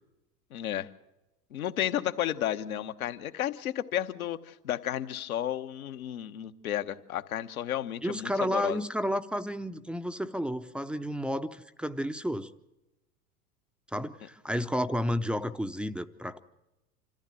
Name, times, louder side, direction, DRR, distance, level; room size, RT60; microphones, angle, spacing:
voice 1, 0.5-0.9 1.5-8.8, left 11 dB, 65° left, 8 dB, 1.3 m, -32 dB
voice 2, 8.0-12.5 13.9-16.4, equal, ahead, 9 dB, 0.7 m, -31 dB
26.5 x 14.5 x 7.6 m, 0.95 s
figure-of-eight pair, 85°, 45 cm